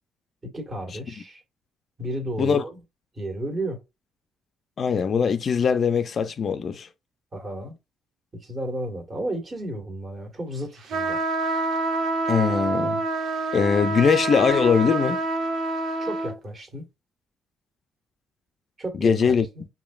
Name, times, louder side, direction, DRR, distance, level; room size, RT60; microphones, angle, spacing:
voice 1, 0.4-1.4 2.0-2.8 3.1-3.8 7.3-7.7 8.3-11.2 16.0-16.8 18.8-19.7, right 1 dB, 30° right, 1.7 m, -33 dB
voice 2, 4.8-6.9 12.3-13.0 13.5-15.2 19.0-19.5, left 6 dB, 50° left, 0.5 m, -21 dB
sound 1, 10.9-16.3, right 2 dB, 70° right, 0.9 m, -26 dB
5.0 x 2.8 x 2.4 m
cardioid pair, 90°, 0 cm